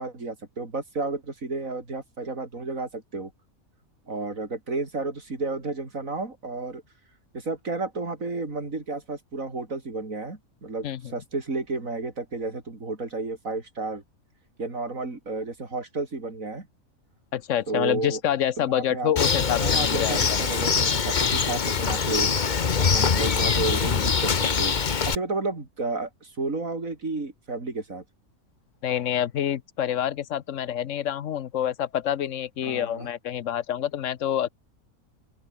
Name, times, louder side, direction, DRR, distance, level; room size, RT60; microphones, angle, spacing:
voice 1, 0.0-3.3 4.1-6.8 7.3-14.0 14.6-16.7 17.7-18.2 18.6-19.1 19.6-22.3 22.8-24.3 24.6-24.7 25.0-28.0 32.6-33.1, right 3 dB, 65° right, 4.5 m, -32 dB
voice 2, 17.3-20.2 28.8-34.5, left 10 dB, 60° left, 1.1 m, -27 dB
Bird, 19.2-25.2, left 6 dB, 35° left, 1.0 m, -23 dB
open air
omnidirectional pair, 1.5 m